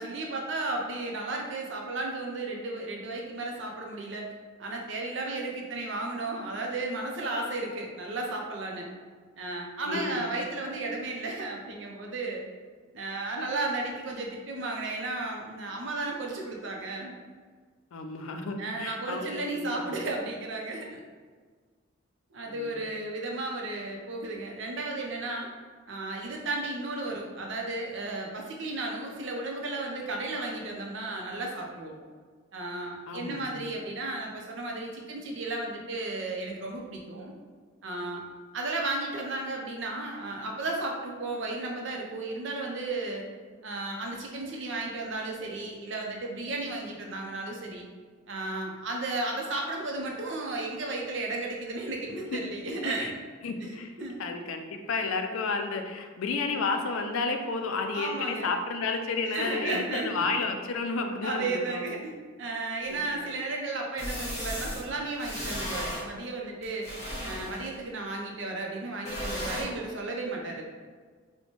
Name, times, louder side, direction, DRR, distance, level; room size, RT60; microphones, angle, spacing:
voice 1, 0.0-4.3 4.6-8.9 9.4-12.4 12.9-17.1 18.6-21.0 22.3-25.5 25.9-31.9 32.5-37.3 37.8-38.2 38.5-43.2 43.6-47.9 48.3-53.1 53.6-54.2 57.9-58.5 59.3-60.2 61.2-62.1 62.4-66.9 67.2-70.6, right 2 dB, 65° right, 0 dB, 0.6 m, -34 dB
voice 2, 9.8-10.3 17.9-19.9 22.5-22.8 33.1-33.7 52.3-52.4 52.9-53.1 53.4-53.9 54.2-61.9 62.9-63.0, left 4 dB, 80° left, 5 dB, 0.4 m, -32 dB
sound 1, 62.8-62.9 64.0-64.8 65.2-66.0 66.6-67.8 69.1-69.6, equal, 35° left, 0.9 m, -35 dB
4.3 x 2.2 x 2.9 m, 1.5 s
head